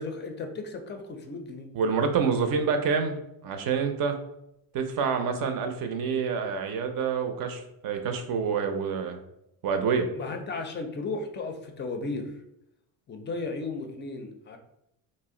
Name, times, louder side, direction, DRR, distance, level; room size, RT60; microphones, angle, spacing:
voice 1, 0.0-1.7 10.1-12.3 13.1-14.6, left 3 dB, 25° left, 5 dB, 0.4 m, -35 dB
voice 2, 1.7-4.2 4.7-9.2 9.6-10.1, right 5 dB, 55° right, 6 dB, 0.6 m, -27 dB
2.5 x 2.1 x 3.6 m, 0.81 s
cardioid pair, 110°, 42 cm